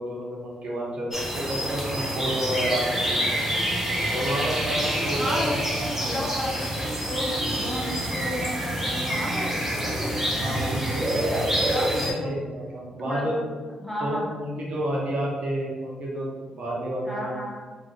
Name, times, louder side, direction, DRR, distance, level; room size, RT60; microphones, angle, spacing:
voice 1, 0.0-3.5 4.1-6.2 10.4-11.0 12.0-13.4 14.0-17.3, right 1 dB, 60° right, -3 dB, 1.1 m, -30 dB
sound 1, 1.1-12.1, right 1 dB, 15° right, 1.0 m, -27 dB
voice 2, 5.1-12.3 13.0-13.4 13.8-14.3 17.0-17.6, equal, 10° left, -3 dB, 1.0 m, -33 dB
2.9 x 2.3 x 3.6 m, 1.4 s
supercardioid pair, 60°, 2 cm